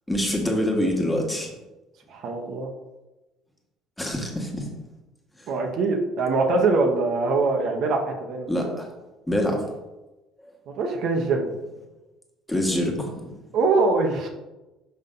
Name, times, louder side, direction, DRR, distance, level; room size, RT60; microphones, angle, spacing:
voice 1, 0.1-1.5 4.0-4.7 8.5-8.9 9.3-9.6 12.5-13.3, left 1 dB, 10° left, 0 dB, 1.5 m, -25 dB
voice 2, 2.1-2.7 5.5-8.5 10.7-11.5 13.5-14.3, right 3 dB, 60° right, 2 dB, 1.0 m, -23 dB
5.8 x 5.3 x 3.8 m, 1.0 s
cardioid pair, 115°, 0 cm